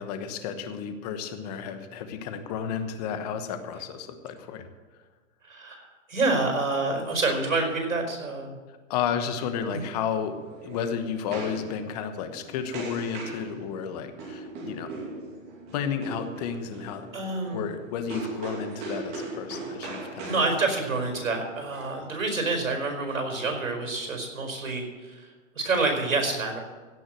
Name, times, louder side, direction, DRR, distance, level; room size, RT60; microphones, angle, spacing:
voice 1, 0.0-4.7 8.9-14.9 15.7-17.1 17.5-20.5, left 7 dB, 30° left, 8 dB, 1.1 m, -32 dB
voice 2, 5.4-8.5 9.7-9.9 17.1-17.6 20.2-26.6, right 3 dB, 90° right, 3 dB, 4.9 m, -28 dB
sound 1, 10.1-22.6, right 3 dB, 25° right, 2.6 m, -40 dB
16.5 x 6.2 x 7.8 m, 1.4 s
hypercardioid pair, 155°, 40 cm